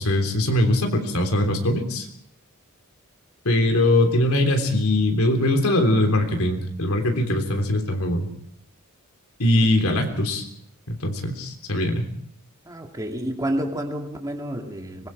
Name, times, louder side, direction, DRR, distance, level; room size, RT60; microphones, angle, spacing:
voice 1, 0.0-2.1 3.5-8.3 9.4-10.5 10.9-12.1, left 1 dB, 80° left, 3 dB, 3.5 m, -21 dB
voice 2, 12.6-15.1, right 1 dB, 15° right, 2 dB, 2.6 m, -29 dB
24.5 x 21.5 x 4.9 m, 0.66 s
head